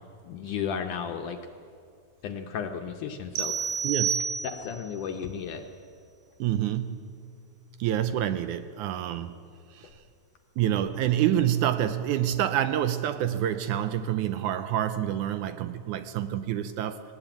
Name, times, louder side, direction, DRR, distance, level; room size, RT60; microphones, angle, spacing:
voice 1, 0.3-1.4 2.2-3.8 4.4-5.6, left 7 dB, 70° left, 5 dB, 2.1 m, -34 dB
sound 1, 3.4-4.9, right 6 dB, 65° right, 2.7 m, -29 dB
voice 2, 3.8-4.3 6.4-7.1 7.8-9.4 9.7-9.9 10.6-17.0, right 11 dB, 80° right, 11 dB, 1.8 m, -27 dB
19.0 x 18.5 x 9.0 m, 2.3 s
omnidirectional pair, 4.2 m